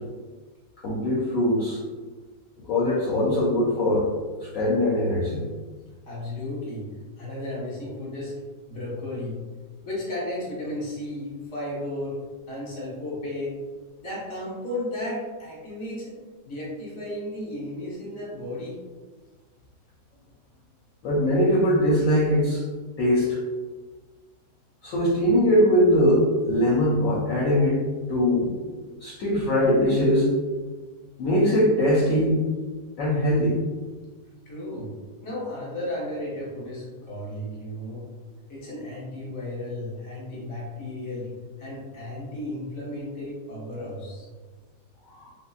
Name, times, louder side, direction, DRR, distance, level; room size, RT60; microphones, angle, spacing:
voice 1, 0.8-1.8 2.7-4.1 4.5-5.4 21.0-22.6 23.0-23.4 24.8-27.8 28.1-28.5 29.0-30.3 31.2-32.4 33.0-33.6 45.1-45.3, equal, 65° left, -6 dB, 0.8 m, -21 dB
voice 2, 6.1-6.9 7.2-8.3 8.7-9.4 9.8-12.2 12.5-13.6 14.0-16.2 16.4-18.7 34.5-34.9 35.2-38.0 38.5-41.3 41.6-44.3, left 1 dB, 25° left, -6 dB, 0.7 m, -34 dB
3.6 x 2.1 x 2.3 m, 1.4 s
omnidirectional pair, 1.8 m